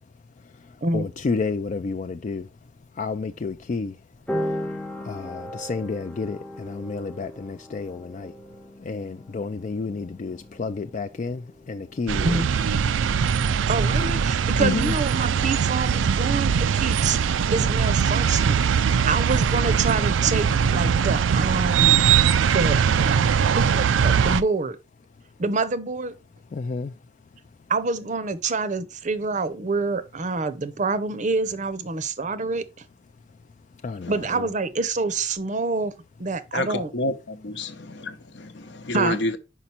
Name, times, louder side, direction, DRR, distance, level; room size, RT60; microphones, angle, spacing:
voice 1, 0.6-2.5 3.0-4.0 5.0-8.3 8.8-12.4 14.6-15.0 26.5-26.9 33.8-34.5, left 4 dB, 40° left, 0.3 m, -30 dB
sound 1, 3.3-3.8 4.2-16.3, equal, 5° left, 0.6 m, -38 dB
sound 2, 12.1-24.4, right 7 dB, 90° right, 0.4 m, -21 dB
voice 2, 13.7-17.2 17.5-22.0 22.5-24.8 25.4-26.1 27.7-32.7 34.1-35.9 36.2-36.9 38.9-39.2, right 3 dB, 40° right, 0.6 m, -27 dB
voice 3, 36.5-39.4, left 1 dB, 65° left, 0.8 m, -29 dB
5.5 x 5.0 x 4.3 m
head